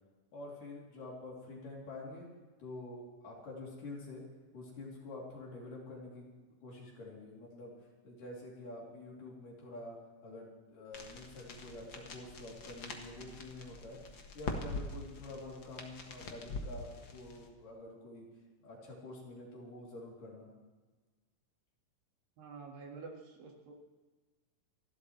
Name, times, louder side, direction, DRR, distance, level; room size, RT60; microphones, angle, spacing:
voice 1, 0.3-2.3 2.6-4.2 4.5-6.3 6.6-7.7 8.0-10.0 10.2-14.0 14.3-18.3 18.6-20.5, left 2 dB, 70° left, -3 dB, 4.7 m, -47 dB
sound 1, 10.9-17.5, left 3 dB, 50° left, 1.4 m, -44 dB
voice 2, 22.4-23.7, right 4 dB, 90° right, 1 dB, 3.8 m, -48 dB
28.0 x 12.0 x 3.2 m, 1.3 s
omnidirectional pair, 4.0 m